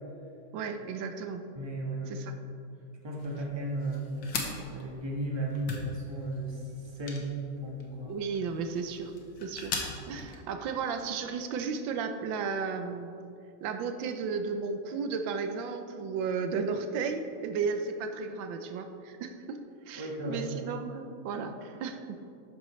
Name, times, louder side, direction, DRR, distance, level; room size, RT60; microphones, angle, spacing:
voice 1, 0.5-1.4 2.1-2.4 8.0-9.1 9.4-9.7 10.1-13.2 13.6-19.6 19.9-22.2, right 5 dB, 90° right, 7 dB, 1.4 m, -34 dB
voice 2, 1.6-2.2 3.0-4.1 4.7-7.3 7.6-8.1 20.0-20.4, right 1 dB, 15° right, -1 dB, 1.2 m, -35 dB
sound 1, 3.2-10.4, left 3 dB, 80° left, 1.9 m, -41 dB
12.0 x 9.3 x 3.2 m, 2.7 s
omnidirectional pair, 2.0 m